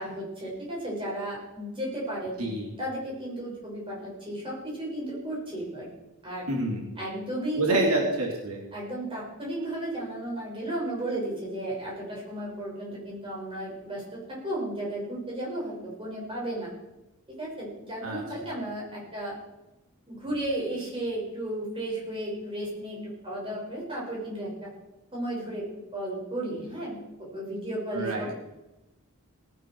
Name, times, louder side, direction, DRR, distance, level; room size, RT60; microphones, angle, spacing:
voice 1, 0.0-2.5 2.8-5.9 6.2-6.4 7.0-7.9 8.7-16.7 17.4-19.4 20.1-23.0 23.2-24.7 25.1-25.7 25.9-28.4, right 1 dB, 25° right, -4 dB, 6.2 m, -34 dB
voice 2, 2.4-2.7 6.5-6.8 7.6-8.6 18.0-18.2 27.9-28.3, right 2 dB, 75° right, -1 dB, 2.8 m, -27 dB
18.5 x 10.5 x 4.7 m, 0.98 s
head